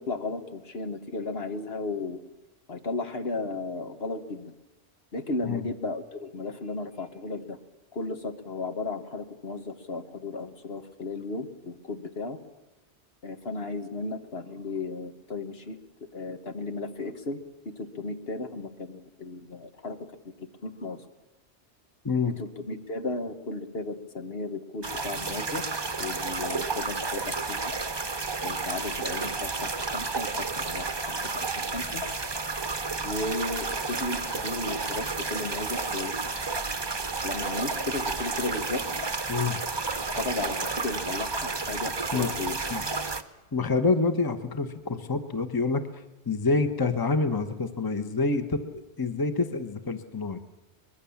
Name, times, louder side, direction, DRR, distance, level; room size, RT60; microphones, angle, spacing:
voice 1, 0.0-2.2 2.7-4.5 5.1-7.6 7.9-12.4 13.2-15.8 16.1-17.4 17.8-20.0 20.6-21.0 22.4-25.6 26.0-27.7 28.4-31.2 31.7-32.0 33.0-36.2 37.2-38.8 40.2-42.6, left 3 dB, 65° left, 7 dB, 1.6 m, -34 dB
sound 1, 24.8-43.2, right 4 dB, 25° right, 0.9 m, -31 dB
voice 2, 39.3-39.6 42.1-42.3 42.7-42.9 43.5-45.8 46.3-50.4, left 4 dB, 20° left, 10 dB, 1.0 m, -27 dB
23.0 x 21.5 x 7.2 m, 1.0 s
omnidirectional pair, 1.1 m